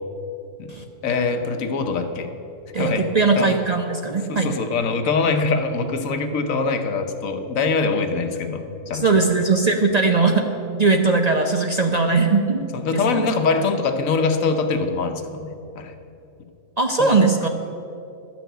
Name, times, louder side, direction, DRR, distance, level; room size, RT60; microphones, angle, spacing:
voice 1, 1.0-2.3 2.7-3.1 3.3-3.6 4.3-9.1 12.7-16.0 17.0-17.3, left 4 dB, 80° left, 7 dB, 1.3 m, -23 dB
voice 2, 2.7-4.5 8.9-10.4 10.8-12.7 12.9-13.3 16.8-17.5, right 3 dB, 40° right, 4 dB, 0.6 m, -19 dB
12.5 x 6.2 x 9.2 m, 2.7 s
omnidirectional pair, 1.4 m